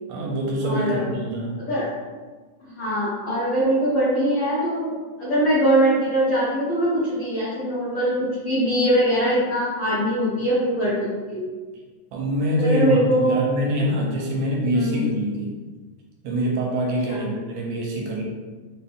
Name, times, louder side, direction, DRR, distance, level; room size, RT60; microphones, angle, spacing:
voice 1, 0.1-1.6 12.1-15.5 16.2-18.2, equal, 80° right, -2 dB, 1.6 m, -25 dB
voice 2, 0.6-1.0 1.7-1.9 2.6-4.9 5.2-11.5 12.5-13.4 14.7-15.0 17.1-17.2, right 1 dB, 90° left, -8 dB, 1.0 m, -22 dB
5.4 x 2.2 x 3.5 m, 1.4 s
omnidirectional pair, 3.5 m